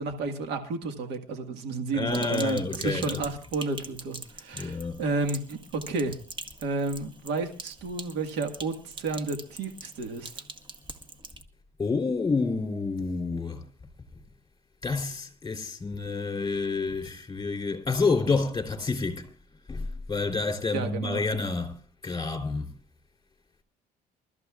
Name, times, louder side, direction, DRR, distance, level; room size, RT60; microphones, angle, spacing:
voice 1, 0.0-5.6 5.9-6.1 6.6-10.4 20.7-21.3, right 3 dB, 85° right, 1.7 m, -31 dB
voice 2, 1.9-3.2 4.5-5.0 11.8-13.6 14.8-19.3 19.7-22.7, left 4 dB, 20° left, 3.4 m, -29 dB
Sink (filling or washing), 2.1-11.4, right 2 dB, 30° right, 1.7 m, -43 dB
28.0 x 13.5 x 2.4 m
cardioid pair, 110°, 17 cm